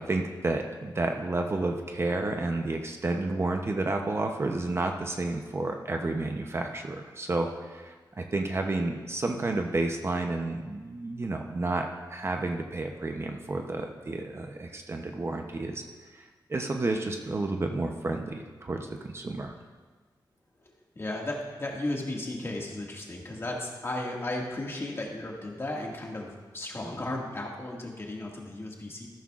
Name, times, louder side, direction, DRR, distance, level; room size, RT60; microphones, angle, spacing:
voice 1, 0.0-15.8 16.1-19.5, right 2 dB, 35° right, 3 dB, 0.7 m, -31 dB
voice 2, 20.6-29.1, left 1 dB, 30° left, -1 dB, 1.9 m, -35 dB
13.5 x 12.0 x 2.4 m, 1.4 s
wide cardioid pair, 115°, 8 cm